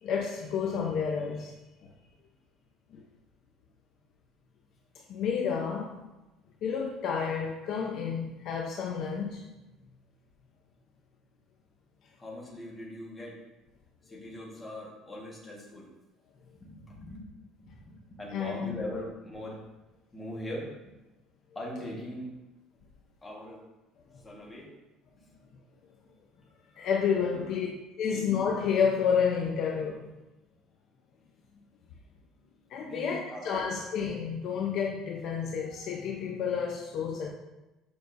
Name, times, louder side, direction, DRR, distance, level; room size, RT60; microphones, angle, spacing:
voice 1, 0.0-1.5 1.8-1.9 2.9-3.0 5.1-6.0 6.6-9.5 18.3-18.7 26.7-27.7 28.0-30.1 32.7-37.3, left 6 dB, 45° left, 0.6 m, -30 dB
voice 2, 12.2-13.4 14.0-15.9 16.6-17.4 17.6-19.6 20.1-21.0 21.5-22.3 23.2-23.6 24.2-24.7 25.1-25.4 27.2-27.5 28.1-28.3 32.8-33.7, left 1 dB, 15° left, 1.4 m, -41 dB
6.8 x 5.3 x 2.6 m
cardioid pair, 170°, 0 cm